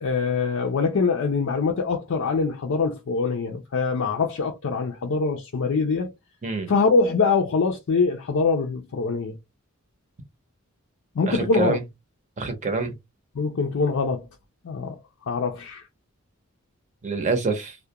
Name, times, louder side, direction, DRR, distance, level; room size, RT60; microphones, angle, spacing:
voice 1, 0.0-6.1 6.7-9.4 11.2-11.8 13.4-14.3 14.6-15.0 15.3-15.8, left 4 dB, 65° left, 0.5 m, -23 dB
voice 2, 11.3-11.8 12.4-13.0 17.0-17.8, right 3 dB, 35° right, 0.6 m, -26 dB
2.3 x 2.1 x 2.8 m
head